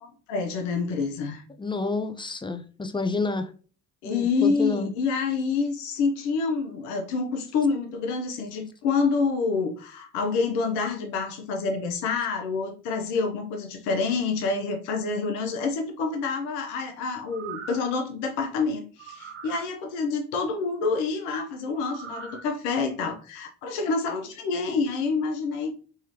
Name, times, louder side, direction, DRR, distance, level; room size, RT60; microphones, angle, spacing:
voice 1, 0.0-1.4 4.0-25.8, left 4 dB, 90° left, 4 dB, 0.7 m, -27 dB
voice 2, 1.6-3.5 4.0-4.9, left 3 dB, 15° left, 8 dB, 0.6 m, -29 dB
sound 1, 17.2-18.0 19.0-19.7 21.8-22.4 22.9-23.0, right 6 dB, 40° right, 1.3 m, -41 dB
3.6 x 3.1 x 2.9 m, 0.38 s
hypercardioid pair, 60°, 33 cm